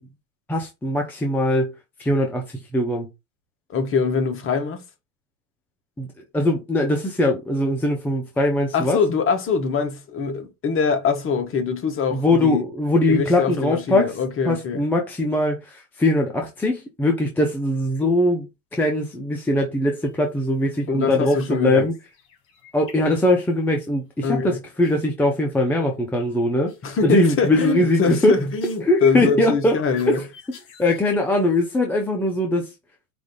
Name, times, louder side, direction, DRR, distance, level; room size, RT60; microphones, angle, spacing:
voice 1, 0.5-1.7 2.0-3.1 6.0-9.0 12.1-14.1 14.5-21.9 22.7-26.7 27.0-28.3 28.8-29.8 30.1-30.2 30.8-32.7, left 1 dB, 5° left, 0.4 m, -21 dB
voice 2, 3.7-4.8 8.7-12.6 13.1-14.8 20.9-21.9 24.2-24.6 26.8-30.2, left 5 dB, 30° left, 1.0 m, -23 dB
sound 1, 20.0-20.4 20.6-20.9 21.2-21.6 21.9-23.7 24.8-25.0 25.5-25.9 26.2-26.4 26.7-27.0 27.4-31.2, left 9 dB, 60° left, 2.0 m, -44 dB
5.0 x 2.5 x 3.6 m
supercardioid pair, 125°, 46 cm